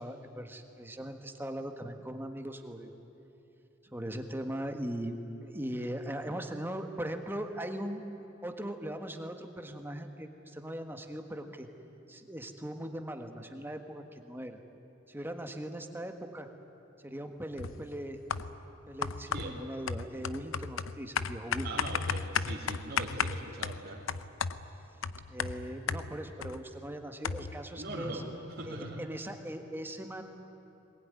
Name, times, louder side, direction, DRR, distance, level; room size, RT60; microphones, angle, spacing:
voice 1, 0.0-2.9 3.8-8.0 8.4-11.7 12.1-14.6 15.1-16.5 17.0-18.2 18.9-21.8 25.3-28.2 28.7-30.2, right 1 dB, 10° right, 5 dB, 1.5 m, -39 dB
sound 1, 17.6-17.9 18.3-18.6 19.0-26.6 26.9-27.0 27.2-27.6, left 6 dB, 75° left, 0.7 m, -34 dB
voice 2, 21.6-24.0 27.8-29.0, right 2 dB, 50° right, -3 dB, 3.0 m, -40 dB
22.0 x 20.5 x 9.7 m, 2.9 s
head